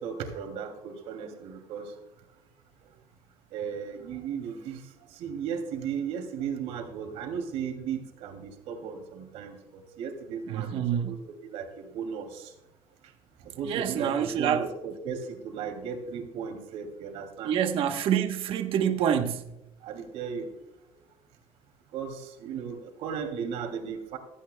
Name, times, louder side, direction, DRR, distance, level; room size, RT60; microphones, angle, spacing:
voice 1, 0.0-1.9 3.5-4.8 5.1-12.5 13.6-17.6 19.8-20.5 21.9-24.2, right 7 dB, 70° right, 2.6 m, -36 dB
voice 2, 10.5-11.1 13.6-14.6 17.4-19.5, right 9 dB, 55° right, 1.1 m, -27 dB
16.0 x 14.5 x 2.3 m
cardioid pair, 145°, 11 cm